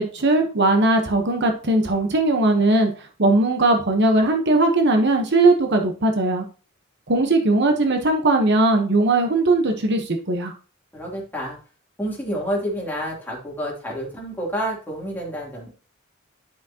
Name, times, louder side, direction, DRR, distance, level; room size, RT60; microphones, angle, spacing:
voice 1, 0.0-2.9 3.2-6.4 7.1-10.5, right 2 dB, 60° right, 4 dB, 1.1 m, -19 dB
voice 2, 10.9-11.6 12.0-15.7, equal, 10° left, -4 dB, 3.1 m, -29 dB
10.5 x 6.1 x 2.9 m, 0.37 s
head